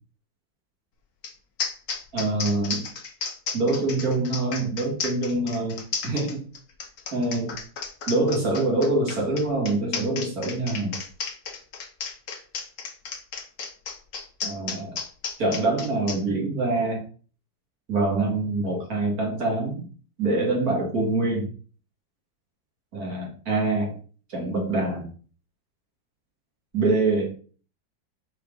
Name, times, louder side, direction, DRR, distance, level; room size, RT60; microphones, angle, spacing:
sound 1, 1.2-1.3 1.6-16.2, left 5 dB, 55° left, 1.4 m, -33 dB
voice 1, 2.1-2.8 3.5-6.4 7.1-7.6 8.1-11.0 14.4-15.0 15.4-17.0 17.9-19.9 20.2-21.5 22.9-24.0 24.3-25.1 26.7-27.3, right 2 dB, 50° right, -1 dB, 2.6 m, -25 dB
4.9 x 4.8 x 5.2 m, 0.41 s
omnidirectional pair, 2.0 m